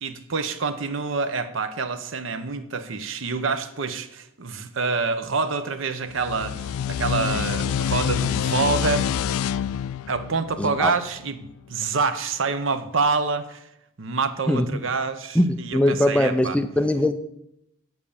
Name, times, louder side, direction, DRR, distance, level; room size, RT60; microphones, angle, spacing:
voice 1, 0.0-9.1 10.1-13.7 14.0-16.6, right 4 dB, 65° right, 0.7 m, -27 dB
sound 1, 6.1-11.4, left 8 dB, 90° left, 0.3 m, -27 dB
voice 2, 10.6-10.9 14.5-14.7 15.3-17.1, left 1 dB, 5° left, 0.4 m, -21 dB
8.1 x 7.4 x 7.0 m
head